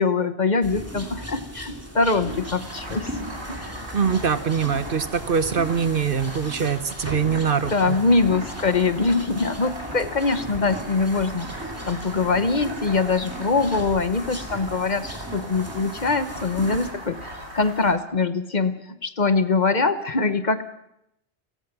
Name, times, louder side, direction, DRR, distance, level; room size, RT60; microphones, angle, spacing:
voice 1, 0.0-3.1 3.5-3.9 7.7-20.6, left 4 dB, 45° left, 11 dB, 1.1 m, -23 dB
sound 1, 0.6-16.9, right 1 dB, 15° right, 2.7 m, -38 dB
sound 2, 2.3-17.9, right 1 dB, 70° right, 5.4 m, -38 dB
voice 2, 3.9-8.0, right 6 dB, 55° right, 12 dB, 1.1 m, -23 dB
29.0 x 16.5 x 6.0 m, 0.81 s
omnidirectional pair, 1.1 m